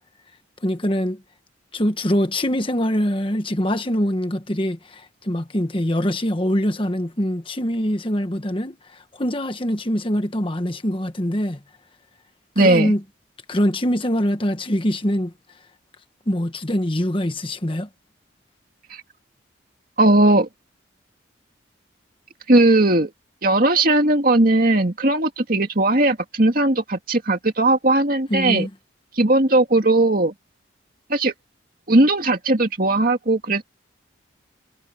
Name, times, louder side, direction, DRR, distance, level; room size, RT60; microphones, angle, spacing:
voice 1, 0.6-1.2 1.7-11.6 12.6-13.0 13.5-15.3 16.3-17.9 28.3-28.7, equal, 25° left, 1.4 m, -23 dB
voice 2, 12.6-12.9 18.9-19.0 20.0-20.5 22.5-23.1 23.4-28.7 29.1-30.3 31.1-31.3 31.9-33.6, right 2 dB, 45° right, 2.4 m, -18 dB
head